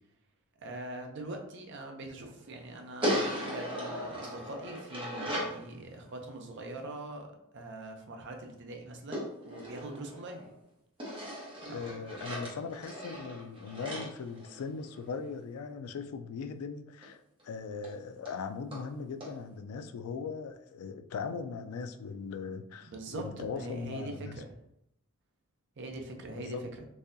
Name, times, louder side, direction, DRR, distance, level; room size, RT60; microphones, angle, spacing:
voice 1, 0.6-7.3 7.5-10.5 11.6-12.2 22.9-24.6 25.8-26.9, right 2 dB, 55° right, 0.6 m, -43 dB
sound 1, 3.0-5.6 9.1-10.5 11.0-15.1 17.0-17.1 17.4-17.5 17.8-17.9 18.2-18.4 18.7-18.8 19.2-19.3, equal, 25° right, 1.1 m, -37 dB
voice 2, 11.7-17.2 17.4-24.4 26.4-26.6, left 5 dB, 85° left, 0.3 m, -39 dB
4.0 x 2.7 x 2.6 m
head